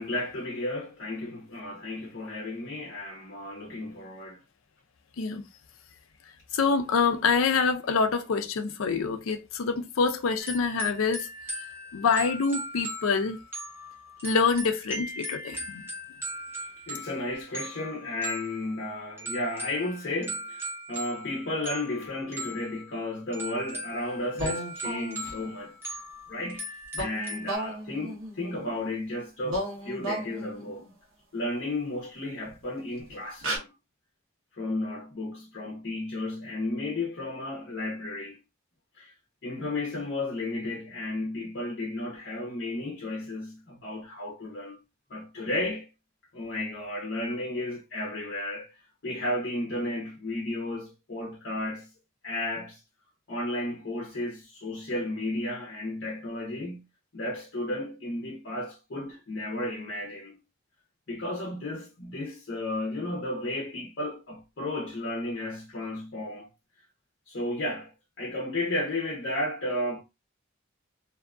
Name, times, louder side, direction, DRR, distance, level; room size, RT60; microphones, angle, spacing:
voice 1, 0.0-4.4 16.6-26.0 26.3-30.9 31.3-33.7 34.5-38.4 39.0-39.1 39.4-44.8 45.1-45.9 46.3-48.7 49.0-51.9 52.2-52.8 53.3-56.8 57.1-60.4 61.1-66.5 67.3-67.9 68.2-70.0, left 1 dB, 60° left, 0.7 m, -33 dB
voice 2, 6.5-11.3 11.6-11.7 11.9-13.4 14.2-15.8, left 5 dB, 85° left, 0.5 m, -26 dB
sound 1, 10.4-27.6, right 1 dB, 10° right, 0.7 m, -39 dB
sound 2, 24.3-25.5 26.9-29.0 29.4-30.9 32.4-32.5 33.0-33.1 33.4-33.6, right 1 dB, 85° right, 1.0 m, -35 dB
2.7 x 2.3 x 2.4 m
head